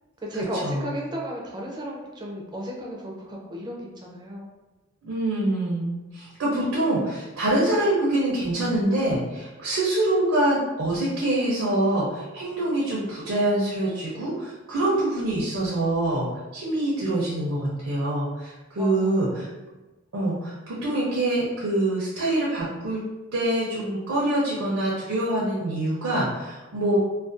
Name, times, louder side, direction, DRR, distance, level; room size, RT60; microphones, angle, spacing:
voice 1, 0.2-4.5 18.8-19.5, equal, 20° right, -2 dB, 0.4 m, -34 dB
voice 2, 5.0-19.5 20.1-23.0 23.3-27.0, right 1 dB, 75° right, -6 dB, 0.5 m, -25 dB
2.4 x 2.2 x 2.5 m, 1.1 s
head